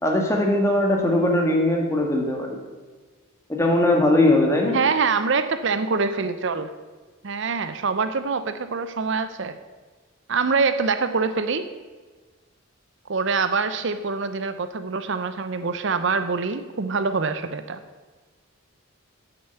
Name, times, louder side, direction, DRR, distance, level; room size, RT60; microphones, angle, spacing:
voice 1, 0.0-2.6 3.5-4.8, left 1 dB, 15° left, 1 dB, 1.7 m, -20 dB
voice 2, 4.7-6.7 7.2-9.6 10.3-11.7 13.1-17.8, right 4 dB, 55° right, 10 dB, 0.6 m, -24 dB
8.9 x 6.8 x 8.1 m, 1.4 s
head